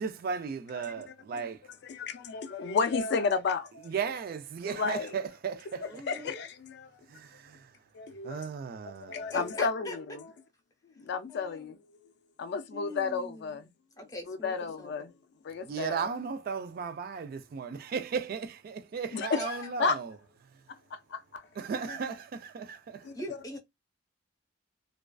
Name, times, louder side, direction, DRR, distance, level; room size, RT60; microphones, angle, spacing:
voice 1, 0.0-1.6 3.8-6.0 7.1-7.7 8.2-9.3 15.6-20.2 21.6-23.1, right 6 dB, 50° right, 0.3 m, -36 dB
voice 2, 1.8-3.9 4.6-5.1 5.8-6.9 7.9-8.4 8.8-10.3 11.0-12.1 12.4-13.7 14.3-15.1 15.4-16.1 19.1-20.0 20.7-21.5 23.0-23.2, left 5 dB, 60° left, 0.4 m, -32 dB
voice 3, 5.9-6.4 9.3-9.9 11.3-11.6 12.7-13.7 14.0-15.0 19.3-19.5 23.1-23.6, left 1 dB, 20° left, 0.6 m, -42 dB
2.4 x 2.3 x 2.3 m
head